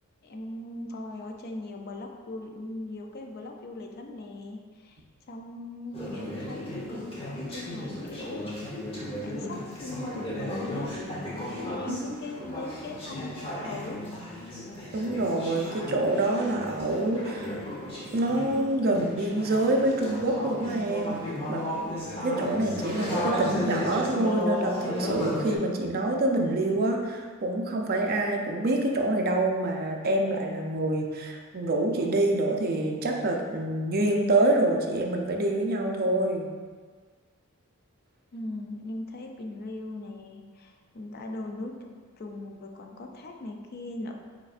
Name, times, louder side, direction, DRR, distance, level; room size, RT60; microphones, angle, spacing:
voice 1, 0.2-5.0 5.3-8.5 9.2-10.9 11.6-14.0 38.3-41.7 42.2-44.2, left 2 dB, 45° left, 3 dB, 0.4 m, -39 dB
Conversation / Chatter, 5.9-25.6, left 1 dB, 25° left, 1.0 m, -34 dB
voice 2, 14.9-17.5 18.1-21.7 22.2-36.5, right 2 dB, 45° right, 1 dB, 0.5 m, -26 dB
5.0 x 4.3 x 2.5 m, 1.5 s
head